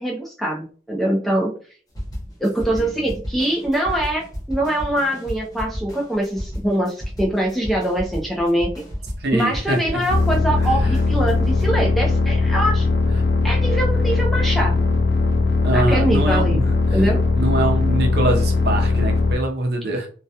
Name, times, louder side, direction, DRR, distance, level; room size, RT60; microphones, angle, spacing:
voice 1, 0.0-1.5 2.4-8.8 9.3-12.9 13.4-14.9 15.7-16.6 16.9-17.2, right 1 dB, ahead, -2 dB, 0.3 m, -23 dB
sound 1, 1.9-11.8, equal, 20° left, 0.8 m, -32 dB
voice 2, 2.7-3.1 9.2-10.1 10.7-11.0 15.6-16.7 17.3-20.1, right 1 dB, 60° right, 3 dB, 0.5 m, -23 dB
sound 2, 10.1-19.4, left 3 dB, 60° left, 0.5 m, -19 dB
2.2 x 2.1 x 2.7 m, 0.41 s
head